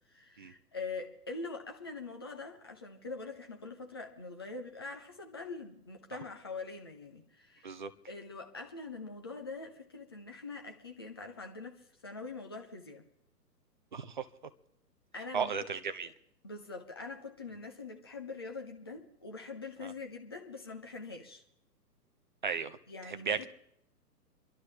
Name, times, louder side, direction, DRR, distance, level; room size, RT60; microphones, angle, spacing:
voice 1, 0.1-7.7 8.1-13.0 15.1-15.5 16.4-21.4 22.9-23.5, left 3 dB, 15° left, 0.5 m, -44 dB
voice 2, 13.9-14.3 15.3-16.1 19.8-19.9 22.4-22.8 23.1-23.5, right 6 dB, 30° right, 0.5 m, -35 dB
26.5 x 11.5 x 3.5 m
figure-of-eight pair, 125°, 50 cm